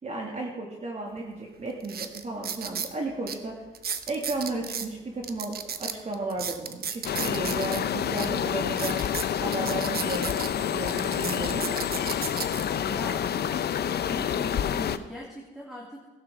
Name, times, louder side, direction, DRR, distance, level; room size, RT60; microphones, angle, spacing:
voice 1, 0.0-3.5 4.1-11.8, right 2 dB, 35° right, -1 dB, 2.3 m, -34 dB
sound 1, 1.2-1.3 1.8-2.9 3.3-3.4 3.7-4.9 5.2-7.8 8.2-8.3 8.7-10.5 10.9-12.6 13.3-13.5, right 7 dB, 50° right, 1.0 m, -34 dB
sound 2, 7.0-15.0, left 9 dB, 55° left, 0.7 m, -28 dB
voice 2, 12.8-13.3 14.1-16.1, left 1 dB, ahead, -4 dB, 2.7 m, -39 dB
16.0 x 11.5 x 3.7 m, 1.2 s
cardioid pair, 90°, 20 cm